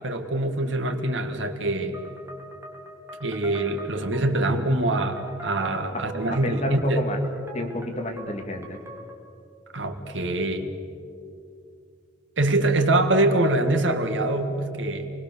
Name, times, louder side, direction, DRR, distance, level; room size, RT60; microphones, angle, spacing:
voice 1, 0.0-2.0 3.2-7.0 9.7-10.7 12.4-15.1, right 2 dB, 85° right, 6 dB, 2.0 m, -24 dB
sound 1, 1.9-9.3, right 1 dB, 15° right, 2.7 m, -43 dB
voice 2, 6.4-7.2 7.5-8.8, left 1 dB, 35° left, 3 dB, 2.4 m, -30 dB
28.0 x 20.0 x 7.0 m, 2.5 s
head